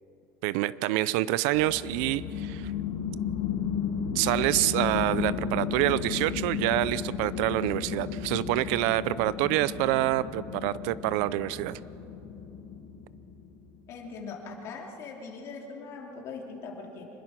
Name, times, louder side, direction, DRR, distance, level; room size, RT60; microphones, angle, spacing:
voice 1, 0.4-2.7 4.1-11.8, right 16 dB, 65° right, 18 dB, 0.5 m, -27 dB
sound 1, 1.5-13.6, left 7 dB, 65° left, 2.7 m, -34 dB
voice 2, 13.9-17.1, left 4 dB, 40° left, 0 dB, 3.4 m, -41 dB
26.0 x 21.0 x 6.0 m, 3.0 s
cardioid pair, 165°, 8 cm